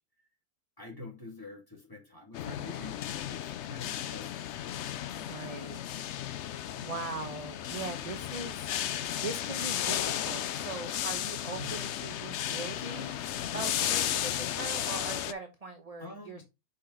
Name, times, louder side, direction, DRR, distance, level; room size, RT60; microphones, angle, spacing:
voice 1, 0.8-3.0 3.3-4.7 11.6-11.8 16.0-16.4, left 2 dB, 15° left, 2.4 m, -46 dB
sound 1, 2.3-15.3, left 11 dB, 65° left, 0.7 m, -34 dB
voice 2, 5.1-5.8 6.2-16.4, right 3 dB, 30° right, 0.9 m, -41 dB
6.2 x 5.4 x 4.0 m
omnidirectional pair, 1.6 m